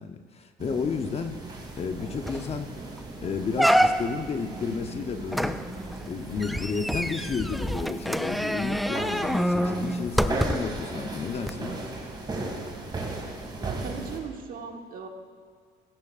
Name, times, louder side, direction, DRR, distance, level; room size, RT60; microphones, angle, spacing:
voice 1, 0.0-2.8 3.2-5.6 6.1-11.8, left 5 dB, 35° left, 7 dB, 0.8 m, -32 dB
sound 1, 0.6-14.2, right 2 dB, 25° right, 2.1 m, -37 dB
sound 2, 1.8-1.9 2.3-2.6 3.0-3.1 3.6-4.3 5.3-10.8 11.4-11.5, equal, ahead, 0.3 m, -26 dB
voice 2, 13.6-15.1, right 6 dB, 55° right, 4 dB, 1.3 m, -38 dB
16.5 x 14.5 x 2.5 m, 2.1 s
cardioid pair, 110°, 17 cm